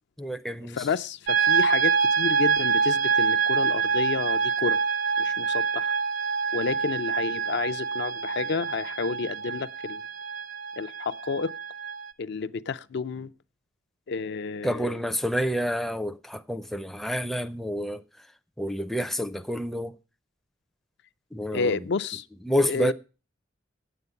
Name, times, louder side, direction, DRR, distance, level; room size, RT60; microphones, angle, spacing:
voice 1, 0.2-0.9 14.6-18.0 18.6-19.9 21.3-21.8 22.4-22.9, equal, ahead, 0.4 m, -28 dB
voice 2, 0.7-4.8 5.2-5.9 6.5-10.0 10.8-11.5 12.2-13.3 14.1-15.0 21.5-22.3 22.6-22.9, left 5 dB, 60° left, 0.4 m, -30 dB
sound 1, 1.3-12.1, right 6 dB, 70° right, 0.6 m, -26 dB
9.0 x 8.0 x 6.9 m
head